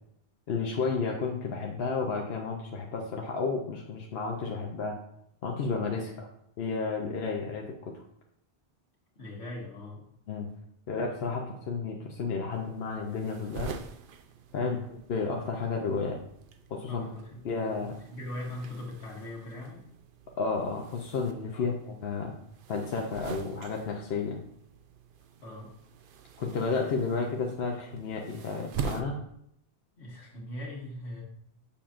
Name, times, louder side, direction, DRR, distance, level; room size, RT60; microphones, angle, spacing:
voice 1, 0.5-5.0 5.4-6.3 6.6-8.0 10.3-10.5 10.9-13.7 14.5-14.8 15.1-16.2 16.7-17.0 17.4-18.0 20.4-22.3 22.7-24.4 26.4-29.2, left 4 dB, 70° left, 0 dB, 0.9 m, -32 dB
voice 2, 9.2-10.0 14.6-14.9 16.9-19.8 21.5-21.7 25.4-25.7 30.0-31.2, left 1 dB, 85° left, -2 dB, 1.8 m, -41 dB
sound 1, 12.5-29.0, right 6 dB, 60° right, 0.7 m, -44 dB
7.1 x 5.6 x 2.5 m, 0.74 s
omnidirectional pair, 1.1 m